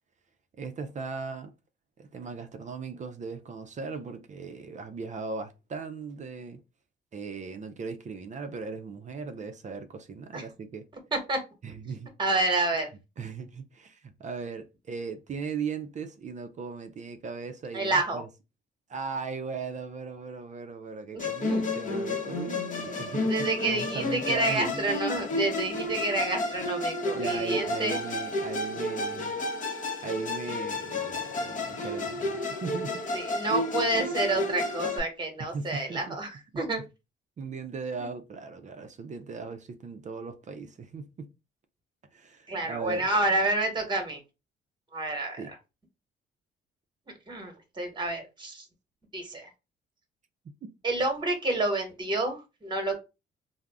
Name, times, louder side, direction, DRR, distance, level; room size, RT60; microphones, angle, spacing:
voice 1, 0.6-1.5 2.0-6.6 7.1-10.9 11.6-12.1 13.2-18.3 18.9-24.8 27.1-29.3 30.0-33.0 35.4-36.2 36.5-36.6 37.4-41.3 42.1-43.1 45.4-45.5 50.4-50.7, right 4 dB, 40° right, 0.4 m, -38 dB
voice 2, 12.2-12.9 17.7-18.2 21.1-21.6 23.2-28.0 33.1-36.8 42.5-44.2 44.9-45.4 47.3-48.6 49.1-49.5 50.8-53.0, right 2 dB, 25° right, 1.1 m, -29 dB
Musical instrument, 21.2-35.0, left 2 dB, 40° left, 0.8 m, -31 dB
2.3 x 2.0 x 3.4 m
cardioid pair, 90°, 20 cm